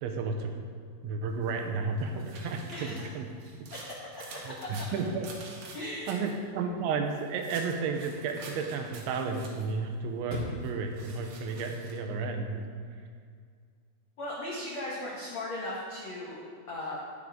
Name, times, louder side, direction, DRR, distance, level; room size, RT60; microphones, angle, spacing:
voice 1, 0.0-0.7 1.0-3.3 4.5-5.3 6.1-12.7, right 4 dB, 85° right, 4 dB, 3.1 m, -32 dB
sound 1, 1.5-6.4 7.1-9.8 10.6-12.0, right 3 dB, 65° right, 1.9 m, -48 dB
Chirp tweet / Car / Slam, 2.5-12.4, left 1 dB, 60° left, 1.1 m, -49 dB
voice 2, 2.7-3.1 4.6-4.7 5.7-6.3 14.2-17.0, left 1 dB, 75° left, -6 dB, 1.6 m, -37 dB
11.5 x 10.0 x 3.7 m, 2.1 s
omnidirectional pair, 5.4 m